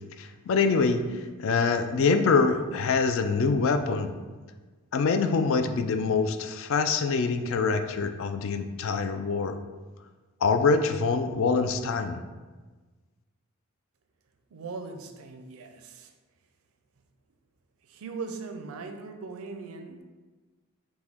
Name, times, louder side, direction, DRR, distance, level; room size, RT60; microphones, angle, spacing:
voice 1, 0.2-1.0 1.4-4.1 4.9-9.6 10.4-12.2, left 4 dB, 65° left, 8 dB, 0.3 m, -25 dB
voice 2, 14.5-16.1 17.8-20.0, right 4 dB, 75° right, 7 dB, 0.4 m, -39 dB
5.9 x 2.2 x 3.5 m, 1.3 s
head